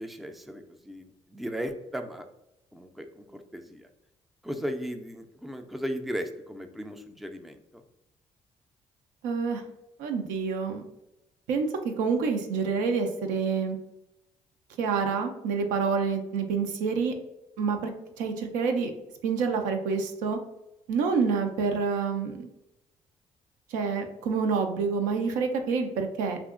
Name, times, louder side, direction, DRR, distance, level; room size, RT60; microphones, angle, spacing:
voice 1, 0.0-2.3 2.7-3.9 4.4-7.8, equal, ahead, 6 dB, 0.3 m, -36 dB
voice 2, 9.2-9.6 10.0-10.8 11.5-11.7 12.0-13.8 14.8-17.1 17.6-17.9 18.2-18.9 19.2-20.4 20.9-22.5 23.7-26.4, right 5 dB, 90° right, 5 dB, 0.4 m, -27 dB
2.7 x 2.4 x 2.4 m, 0.88 s
supercardioid pair, 75°, 13 cm